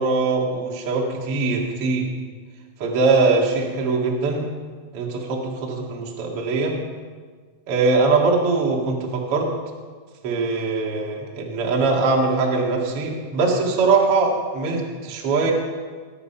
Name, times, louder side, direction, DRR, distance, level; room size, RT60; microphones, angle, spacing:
voice 1, 0.0-2.1 2.8-4.4 4.9-6.7 7.7-9.5 10.2-15.5, right 3 dB, 50° right, -1 dB, 1.7 m, -21 dB
19.0 x 9.6 x 5.7 m, 1.6 s
omnidirectional pair, 5.5 m